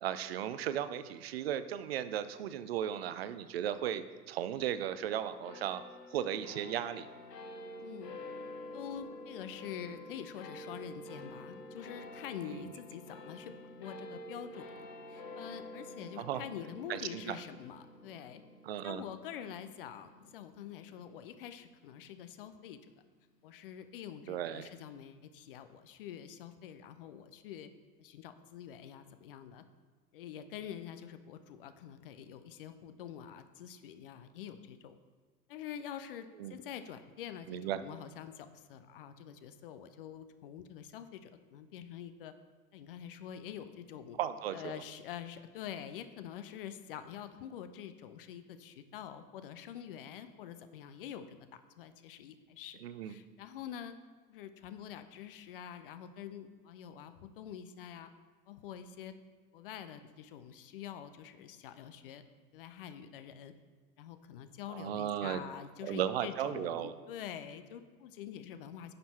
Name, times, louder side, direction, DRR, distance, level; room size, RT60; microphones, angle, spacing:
voice 1, 0.0-5.8 6.1-7.1 12.5-12.7 16.2-16.4 16.9-17.4 18.6-19.0 24.3-24.7 36.4-36.5 37.5-37.8 44.2-44.8 52.8-53.1 64.7-65.4 65.8-66.9, right 10 dB, 40° right, 12 dB, 0.6 m, -36 dB
sound 1, 5.4-22.1, left 1 dB, 75° left, 1.3 m, -49 dB
voice 2, 7.8-8.1 8.7-13.5 13.8-18.4 18.8-22.8 23.4-27.7 28.0-29.6 30.1-35.0 35.5-42.3 42.7-44.2 44.5-54.0 54.3-58.1 58.5-59.2 59.5-62.2 62.5-63.5 64.0-68.9, left 9 dB, 35° left, 10 dB, 0.7 m, -46 dB
11.0 x 6.8 x 4.3 m, 1.5 s
figure-of-eight pair, 100°, 50 cm